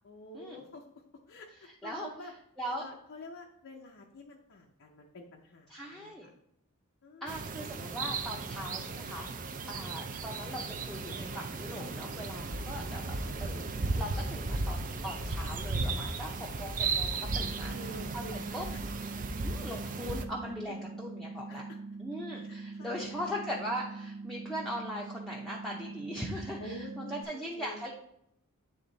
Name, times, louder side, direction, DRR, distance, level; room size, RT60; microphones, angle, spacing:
voice 1, 0.0-0.8 1.3-2.3 2.8-6.3 7.0-7.4 12.7-13.1 17.5-18.8 20.7-21.1 21.5-21.8 22.3-23.3 26.6-27.9, left 1 dB, 60° left, 0 dB, 0.6 m, -48 dB
voice 2, 5.7-6.3 7.2-9.3 9.7-13.1 13.4-17.7 18.1-18.2 18.5-18.6 19.3-21.6 22.0-27.9, equal, ahead, -4 dB, 0.7 m, -40 dB
sound 1, 7.3-20.2, right 3 dB, 35° right, 0.5 m, -35 dB
sound 2, 17.2-27.2, right 3 dB, 80° right, 0.6 m, -43 dB
8.7 x 3.5 x 4.0 m, 0.75 s
head